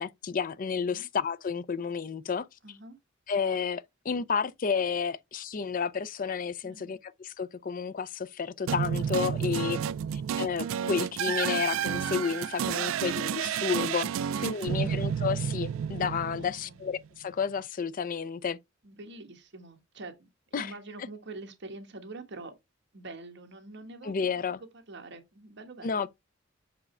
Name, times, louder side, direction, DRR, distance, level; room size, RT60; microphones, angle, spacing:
voice 1, 0.0-2.5 3.3-9.8 10.1-18.6 20.5-20.7 24.0-24.6 25.8-26.1, left 6 dB, 45° left, 0.4 m, -31 dB
voice 2, 2.6-3.0 6.6-6.9 9.3-9.5 16.3-16.8 18.8-20.3 20.6-22.6 22.9-26.1, right 2 dB, 60° right, 1.3 m, -46 dB
sound 1, 8.7-16.9, right 8 dB, 80° right, 0.3 m, -31 dB
5.9 x 4.8 x 3.3 m
head